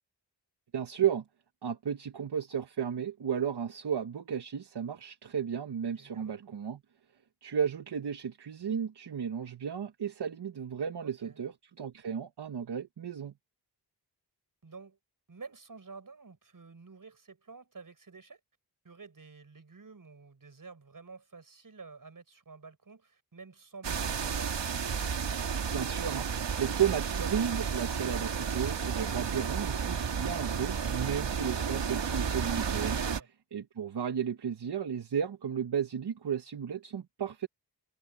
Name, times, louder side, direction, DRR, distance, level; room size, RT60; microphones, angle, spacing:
voice 1, 0.7-1.2 1.6-6.8 7.4-13.3 25.7-33.0 33.5-37.5, right 8 dB, 70° right, 1.2 m, -33 dB
voice 2, 6.0-6.3 11.0-11.4 14.6-15.0 15.3-18.4 18.8-24.7 33.0-33.3, right 4 dB, 50° right, 6.4 m, -50 dB
sound 1, 23.8-33.2, right 6 dB, 85° right, 2.0 m, -32 dB
wide cardioid pair, 85°, 42 cm